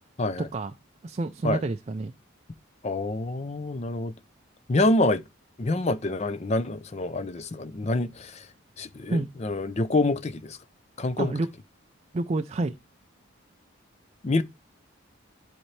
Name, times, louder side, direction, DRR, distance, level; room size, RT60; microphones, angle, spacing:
voice 1, 0.4-0.7 1.0-2.1 9.1-9.3 11.2-11.5 12.1-12.7, right 2 dB, 30° right, 0.4 m, -28 dB
voice 2, 2.8-4.1 4.7-5.2 5.6-8.5 8.8-10.6 11.0-11.3 14.2-14.4, left 2 dB, 30° left, 0.5 m, -26 dB
11.5 x 4.3 x 3.2 m
head